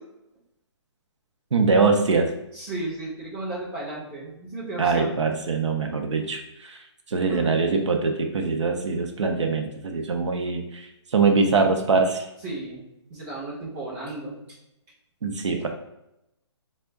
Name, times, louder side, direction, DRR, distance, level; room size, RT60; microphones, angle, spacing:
voice 1, 1.5-2.3 4.8-6.4 7.1-10.6 11.1-12.2 15.2-15.7, right 4 dB, 90° right, 4 dB, 0.7 m, -22 dB
voice 2, 2.5-5.2 7.3-7.6 12.4-12.8 13.1-14.4, right 2 dB, 15° right, -8 dB, 1.0 m, -34 dB
4.3 x 2.1 x 3.4 m, 0.87 s
hypercardioid pair, 175°, 15 cm